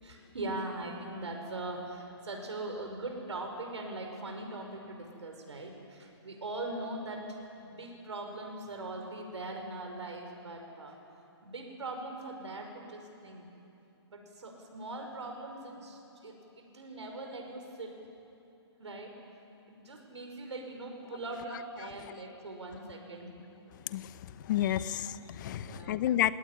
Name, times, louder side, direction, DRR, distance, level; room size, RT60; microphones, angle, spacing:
voice 1, 0.0-11.0 11.4-13.4 14.1-18.0 18.8-19.2 19.7-23.3 25.5-26.1, right 2 dB, 85° right, 3 dB, 5.4 m, -41 dB
voice 2, 23.9-26.3, left 12 dB, 45° left, 13 dB, 1.2 m, -31 dB
29.0 x 18.0 x 9.9 m, 2.9 s
hypercardioid pair, 145°, 14 cm